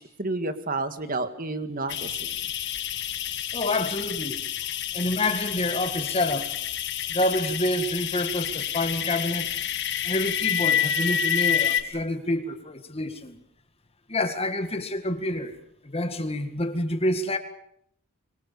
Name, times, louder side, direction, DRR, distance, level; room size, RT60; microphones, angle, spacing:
voice 1, 0.0-2.4, right 2 dB, 40° right, 10 dB, 1.9 m, -31 dB
sound 1, 1.9-11.8, left 9 dB, 55° left, 1.6 m, -28 dB
voice 2, 3.5-4.4 4.9-6.5 7.1-9.6 10.0-13.4 14.1-15.6 15.8-17.4, left 1 dB, 25° left, 8 dB, 1.9 m, -28 dB
25.0 x 24.5 x 6.9 m, 0.71 s
head